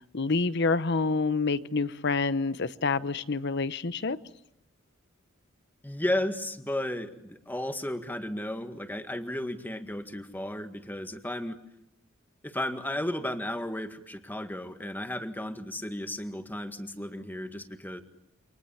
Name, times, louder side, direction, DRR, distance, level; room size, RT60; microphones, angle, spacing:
voice 1, 0.0-4.2, left 4 dB, 55° left, 1.0 m, -27 dB
voice 2, 5.8-11.6 12.4-18.0, left 1 dB, 10° left, 1.8 m, -34 dB
29.5 x 26.5 x 7.2 m
head